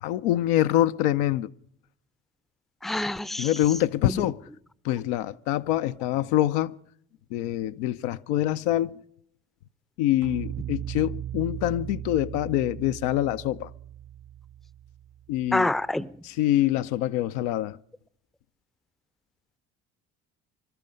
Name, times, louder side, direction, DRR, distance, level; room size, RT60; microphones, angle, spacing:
voice 1, 0.0-1.5 3.4-4.4 4.8-6.8 7.3-9.0 10.0-13.7 15.3-15.7 16.2-17.8, left 13 dB, 80° left, 0.6 m, -25 dB
voice 2, 2.8-3.5 4.1-4.3 15.5-16.1, left 1 dB, ahead, 0.5 m, -27 dB
sound 1, 10.2-15.5, right 11 dB, 75° right, 2.3 m, -37 dB
22.0 x 12.5 x 5.2 m
hypercardioid pair, 65°, 33 cm